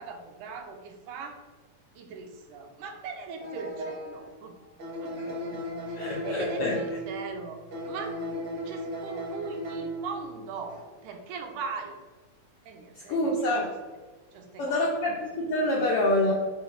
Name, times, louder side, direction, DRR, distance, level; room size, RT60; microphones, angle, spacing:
voice 1, 0.0-1.4 2.0-4.6 5.0-5.2 5.9-7.6 7.9-12.0 12.7-13.6 14.3-14.9, right 5 dB, 85° right, 3 dB, 2.2 m, -40 dB
sound 1, 3.4-4.4 4.8-7.2 7.7-10.3 10.6-10.8, equal, 60° right, 1.2 m, -36 dB
voice 2, 5.2-5.6 5.9-6.8 12.9-13.7 14.6-16.3, left 1 dB, 75° left, -3 dB, 1.3 m, -27 dB
5.4 x 3.1 x 5.6 m, 1.4 s
omnidirectional pair, 3.6 m